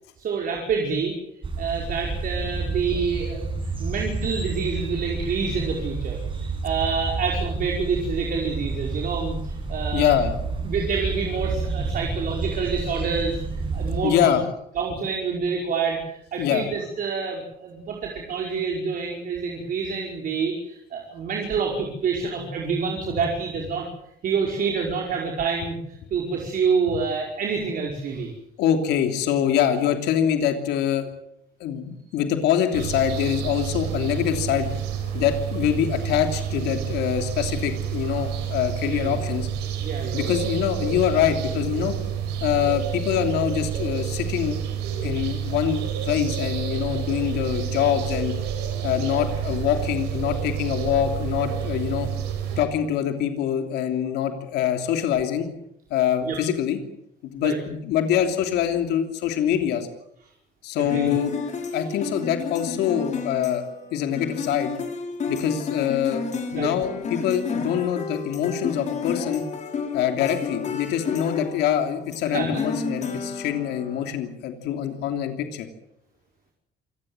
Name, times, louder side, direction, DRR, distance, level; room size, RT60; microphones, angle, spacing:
voice 1, 0.2-1.1 1.6-3.5 3.8-6.2 6.6-10.2 10.6-13.4 13.7-14.4 14.7-23.9 24.2-25.8 26.1-28.3 38.8-39.2 39.8-40.2 56.2-56.4 57.4-57.5 60.8-61.1 66.5-66.7 72.2-72.6, right 5 dB, 55° right, 1 dB, 5.2 m, -27 dB
sound 1, 1.4-14.0, right 3 dB, 30° right, 7.5 m, -30 dB
voice 2, 9.9-10.4 14.0-14.4 16.4-16.7 28.6-31.1 31.6-34.7 35.1-39.5 40.1-42.0 42.4-44.6 45.0-48.4 48.8-52.1 52.6-55.5 55.9-56.8 57.2-59.9 60.6-61.3 61.7-63.6 63.9-64.7 65.3-66.3 66.5-69.4 69.9-75.7, left 9 dB, 85° left, 6 dB, 3.2 m, -24 dB
sound 2, 32.7-52.6, right 8 dB, 90° right, 6.0 m, -29 dB
sound 3, 60.9-74.1, left 5 dB, 45° left, 6.0 m, -31 dB
27.5 x 17.5 x 8.0 m, 0.74 s
cardioid pair, 110°, 17 cm